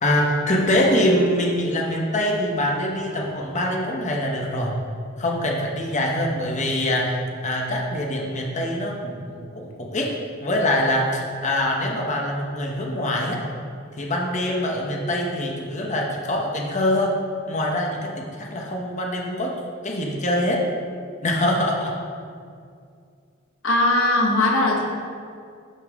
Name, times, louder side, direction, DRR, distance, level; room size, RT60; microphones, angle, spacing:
voice 1, 0.0-4.8 5.2-10.1 10.4-13.5 14.0-17.2 17.5-19.5 19.8-20.6 21.2-21.9, left 1 dB, 35° left, 0 dB, 1.0 m, -24 dB
voice 2, 23.6-24.8, left 2 dB, 65° left, 0 dB, 1.3 m, -19 dB
11.0 x 5.5 x 3.6 m, 2.3 s
head